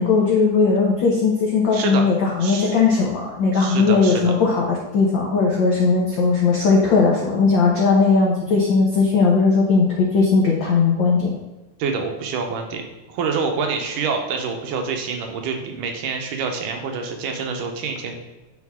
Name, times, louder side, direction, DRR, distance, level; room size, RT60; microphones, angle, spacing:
voice 1, 0.0-11.3, left 4 dB, 85° left, -2 dB, 1.0 m, -18 dB
voice 2, 1.7-2.1 2.4-2.8 3.5-4.4 11.8-18.2, right 5 dB, 85° right, 3 dB, 2.5 m, -27 dB
9.6 x 4.3 x 3.6 m, 1.1 s
omnidirectional pair, 3.6 m